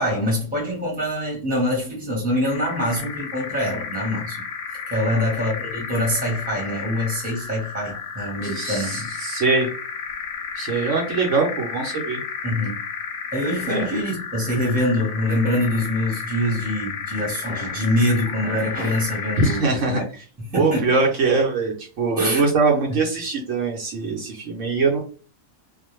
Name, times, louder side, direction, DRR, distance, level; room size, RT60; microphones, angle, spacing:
voice 1, 0.0-4.4 4.9-9.1 12.4-12.8 13.3-20.0 20.4-20.9 22.2-22.4 22.9-23.0, left 1 dB, 5° right, 0.9 m, -24 dB
sound 1, 2.3-19.8, left 6 dB, 60° left, 0.8 m, -33 dB
voice 2, 8.5-9.7 10.6-12.2 13.7-13.9 19.4-20.0 20.5-25.0, right 3 dB, 65° right, 1.0 m, -22 dB
2.4 x 2.2 x 3.0 m
omnidirectional pair, 1.5 m